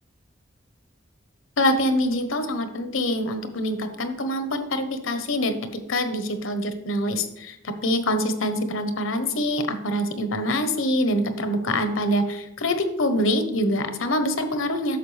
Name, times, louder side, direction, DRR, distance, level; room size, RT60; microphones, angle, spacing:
voice 1, 1.6-5.5 5.9-7.6 7.8-15.0, left 1 dB, 85° left, 8 dB, 1.1 m, -25 dB
10.5 x 7.0 x 3.4 m, 0.87 s
head